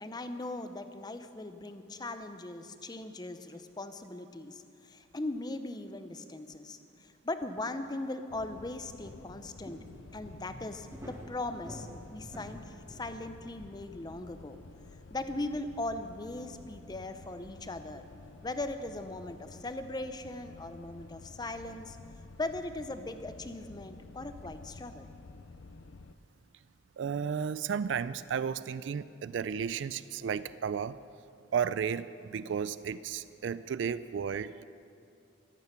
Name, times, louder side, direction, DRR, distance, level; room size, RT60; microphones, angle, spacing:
voice 1, 0.0-9.8 10.1-14.6 15.1-18.0 18.4-22.0 22.4-25.1, left 2 dB, 20° left, 9 dB, 0.6 m, -39 dB
sound 1, 7.4-8.1 8.4-13.5, equal, 15° right, 1.8 m, -49 dB
sound 2, 8.3-26.2, left 3 dB, 80° left, 0.5 m, -51 dB
voice 2, 27.0-31.0 31.5-34.6, right 7 dB, 70° right, 16 dB, 0.3 m, -33 dB
14.5 x 13.0 x 5.8 m, 2.6 s
head